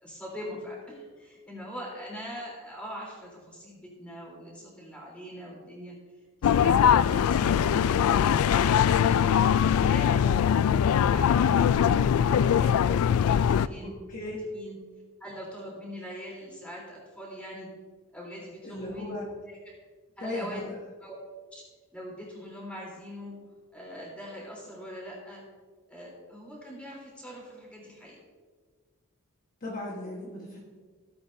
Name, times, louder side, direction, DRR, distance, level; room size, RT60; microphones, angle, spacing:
voice 1, 0.0-6.0 6.4-7.9 11.1-11.6 11.9-12.7 13.2-13.9 14.4-14.8 15.2-17.7 18.1-19.2 19.5-19.7 20.2-20.6 21.0-21.1 21.5-21.6 21.9-23.4 23.7-25.4 25.9-28.2, equal, 5° left, -4 dB, 3.4 m, -42 dB
sound 1, 6.4-13.7, left 8 dB, 80° left, 0.3 m, -22 dB
voice 2, 13.8-14.4 18.6-19.3 20.2-20.7 29.6-30.6, left 1 dB, 40° left, -3 dB, 1.3 m, -37 dB
16.5 x 8.6 x 2.7 m, 1.5 s
head